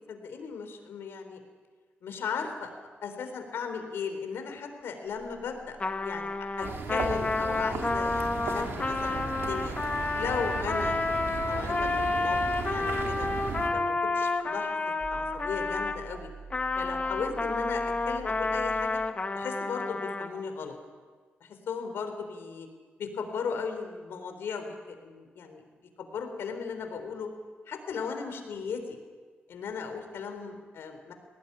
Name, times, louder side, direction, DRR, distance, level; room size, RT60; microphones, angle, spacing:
voice 1, 0.1-1.4 2.0-2.7 3.0-6.3 6.6-9.8 10.2-12.4 12.7-13.3 13.7-14.8 15.1-16.3 16.8-19.0 19.3-20.8 21.4-22.7 23.0-25.6 26.0-27.3 27.7-29.0 29.5-31.1, left 5 dB, 85° left, 6 dB, 3.9 m, -36 dB
sound 1, 5.0-18.9, right 4 dB, 60° right, 7.3 m, -50 dB
Trumpet, 5.8-16.0 16.5-20.3, left 3 dB, 35° left, 1.9 m, -30 dB
sound 2, 6.6-13.7, right 4 dB, 80° right, 3.2 m, -36 dB
20.0 x 17.5 x 9.9 m, 1.5 s
cardioid pair, 80°, 4 cm